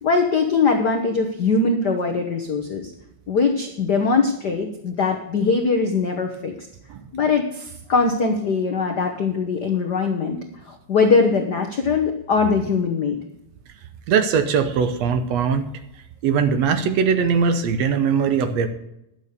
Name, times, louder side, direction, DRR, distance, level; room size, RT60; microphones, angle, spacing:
voice 1, 0.0-2.9 3.3-6.5 7.1-10.4 10.6-13.2, left 4 dB, 85° left, 4 dB, 0.9 m, -21 dB
voice 2, 14.1-15.7 16.2-18.7, right 6 dB, 70° right, 9 dB, 1.8 m, -20 dB
11.0 x 8.2 x 6.6 m, 0.82 s
omnidirectional pair, 3.6 m